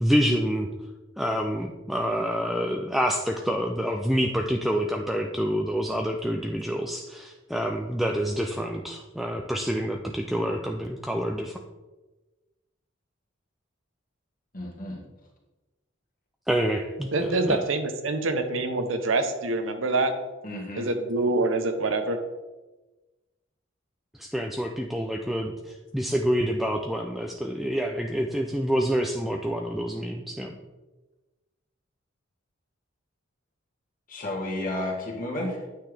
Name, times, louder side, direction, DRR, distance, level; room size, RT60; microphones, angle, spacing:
voice 1, 0.0-0.7 1.2-11.5 16.5-17.6 24.2-30.6, equal, ahead, 1 dB, 0.4 m, -27 dB
voice 2, 14.5-15.0 20.4-20.9 34.1-35.7, left 1 dB, 45° left, -2 dB, 1.9 m, -32 dB
voice 3, 17.1-20.1 20.7-22.2, right 2 dB, 75° right, 7 dB, 0.8 m, -25 dB
9.1 x 5.7 x 3.4 m, 1.2 s
head